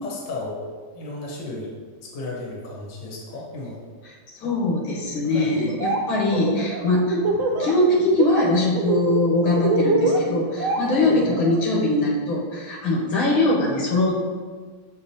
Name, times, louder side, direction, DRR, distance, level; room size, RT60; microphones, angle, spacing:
voice 1, 0.0-1.7 2.0-3.9 5.2-5.6 10.8-11.3, left 2 dB, 65° left, -3 dB, 1.8 m, -34 dB
voice 2, 4.4-7.2 7.6-14.1, left 2 dB, 90° left, -4 dB, 1.9 m, -21 dB
Laughter, 5.6-6.0 6.3-7.7 8.0-8.4 8.7-11.6, right 3 dB, 70° right, 0.8 m, -24 dB
6.9 x 4.9 x 2.8 m, 1.5 s
omnidirectional pair, 2.1 m